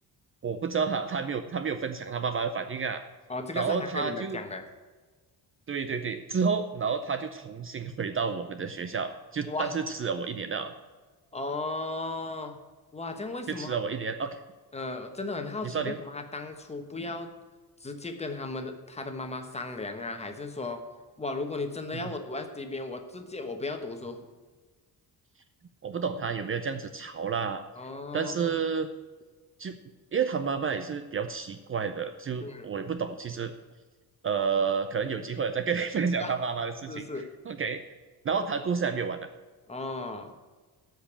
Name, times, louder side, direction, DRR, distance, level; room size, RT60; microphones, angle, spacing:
voice 1, 0.4-3.0 3.5-4.4 5.7-10.7 13.5-14.4 15.6-16.0 21.9-22.0 25.8-27.6 28.1-28.9 29.6-29.8 30.1-33.5 34.2-37.8 38.2-39.3, right 5 dB, 35° right, 9 dB, 0.6 m, -30 dB
voice 2, 3.3-4.6 9.5-9.7 11.3-12.6 12.9-13.8 14.7-17.3 17.8-20.8 21.2-24.2 27.8-28.5 32.4-32.7 36.2-36.3 36.9-37.3 39.7-40.3, left 3 dB, 15° left, 5 dB, 1.2 m, -35 dB
13.0 x 5.3 x 8.6 m, 1.4 s
cardioid pair, 170°, 38 cm